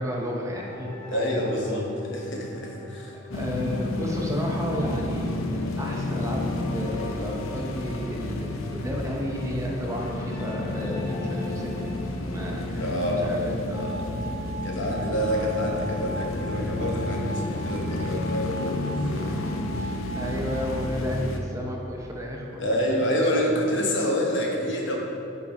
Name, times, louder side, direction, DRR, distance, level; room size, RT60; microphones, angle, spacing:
voice 1, 0.0-1.8 3.3-11.9 12.3-14.2 14.8-15.3 19.2-19.9 20.1-23.9, equal, 15° right, -1 dB, 0.7 m, -33 dB
sound 1, 0.5-18.0, left 2 dB, 30° left, 1.0 m, -40 dB
voice 2, 1.1-3.2 12.8-13.3 13.7-14.1 14.6-19.1 22.6-25.0, equal, 65° left, -1 dB, 1.0 m, -27 dB
sound 2, 3.3-21.4, left 2 dB, 80° left, 0.6 m, -31 dB
sound 3, 13.7-20.8, right 2 dB, 35° right, 1.2 m, -39 dB
6.9 x 4.3 x 4.2 m, 2.8 s
head